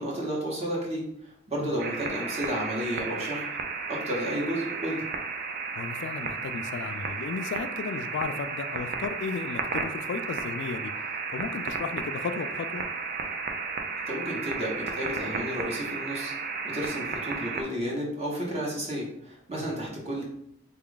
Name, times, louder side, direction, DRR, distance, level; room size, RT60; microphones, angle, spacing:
voice 1, 0.0-3.5 3.9-5.0 14.1-16.3 16.6-20.2, equal, 30° right, -3 dB, 0.8 m, -32 dB
sound 1, 1.8-17.6, right 4 dB, 50° right, 0.4 m, -33 dB
voice 2, 5.8-10.9 11.3-12.9 19.5-19.7, left 5 dB, 60° left, 10 dB, 0.3 m, -34 dB
3.4 x 2.3 x 3.7 m, 0.75 s
head